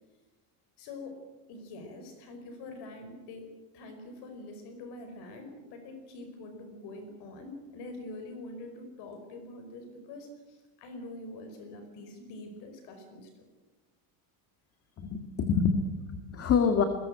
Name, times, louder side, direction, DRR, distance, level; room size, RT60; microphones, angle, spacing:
voice 1, 0.8-1.2 1.5-13.3, left 2 dB, 55° left, 7 dB, 5.2 m, -45 dB
voice 2, 15.0-16.8, left 6 dB, 30° left, 7 dB, 1.9 m, -26 dB
22.0 x 20.5 x 8.8 m, 1.1 s
cardioid pair, 155°, 49 cm